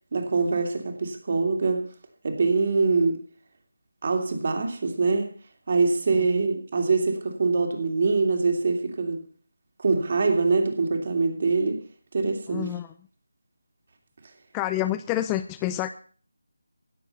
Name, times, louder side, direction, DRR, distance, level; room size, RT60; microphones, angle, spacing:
voice 1, 0.1-1.9 2.2-3.2 4.0-5.3 5.7-9.2 9.8-11.8 12.1-12.7, right 4 dB, 40° right, 2.8 m, -24 dB
voice 2, 12.5-12.9 14.5-15.9, left 14 dB, 10° left, 0.6 m, -28 dB
16.5 x 7.3 x 6.9 m
figure-of-eight pair, 160°, 0 cm